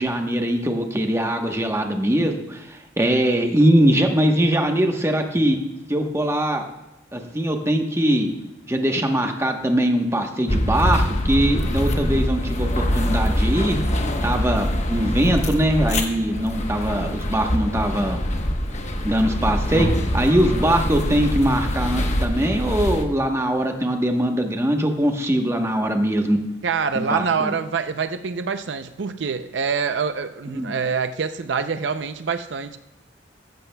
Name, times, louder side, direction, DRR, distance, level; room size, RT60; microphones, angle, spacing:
voice 1, 0.0-5.6 5.9-6.7 7.1-8.3 8.7-13.8 14.2-18.2 19.0-26.4 26.9-27.5 30.5-30.7, right 1 dB, 15° right, 4 dB, 1.0 m, -21 dB
sound 1, 10.5-23.0, equal, 40° left, 1.0 m, -24 dB
voice 2, 26.6-32.8, right 5 dB, 75° right, 10 dB, 0.5 m, -25 dB
15.0 x 14.0 x 2.2 m, 0.96 s
head